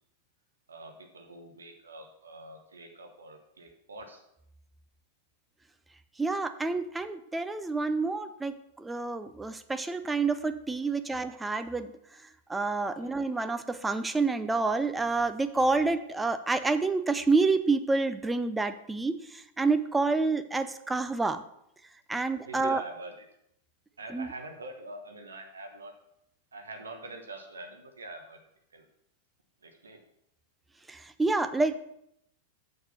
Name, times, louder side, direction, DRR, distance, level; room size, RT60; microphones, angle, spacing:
voice 1, 0.7-4.2 12.8-13.1 22.1-23.2 24.0-25.9 26.5-28.4 28.7-28.9 29.6-30.0, right 2 dB, 75° right, 4 dB, 1.2 m, -45 dB
voice 2, 6.2-11.9 12.5-21.4 22.1-22.8 24.1-24.3 30.9-31.8, right 3 dB, 10° right, 10 dB, 0.5 m, -28 dB
6.7 x 6.6 x 5.6 m, 0.77 s
figure-of-eight pair, 95°, 0 cm